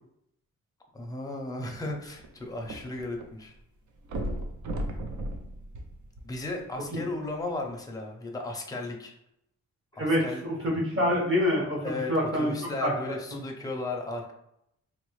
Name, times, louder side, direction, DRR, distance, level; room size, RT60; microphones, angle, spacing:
voice 1, 0.9-3.5 6.2-9.1 9.9-10.4 11.8-14.3, left 2 dB, 10° left, 1 dB, 0.5 m, -35 dB
sound 1, 1.8-3.3 3.6-3.7 4.1-6.6 7.3-7.4, right 1 dB, 70° right, 0.6 m, -35 dB
voice 2, 10.0-12.5 12.8-12.9, left 1 dB, 45° right, -2 dB, 1.2 m, -26 dB
4.0 x 2.0 x 3.0 m, 0.79 s
wide cardioid pair, 125°, 30 cm